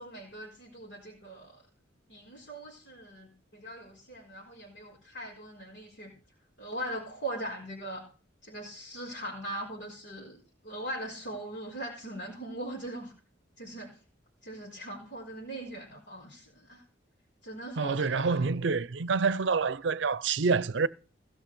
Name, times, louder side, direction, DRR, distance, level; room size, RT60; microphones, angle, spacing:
voice 1, 0.0-1.6 2.1-6.1 6.6-8.0 8.4-13.1 13.6-13.9 14.4-16.8 17.4-18.4, right 1 dB, 70° left, 4.4 m, -40 dB
voice 2, 17.8-20.9, right 4 dB, 70° right, 0.6 m, -27 dB
16.0 x 6.2 x 6.9 m
head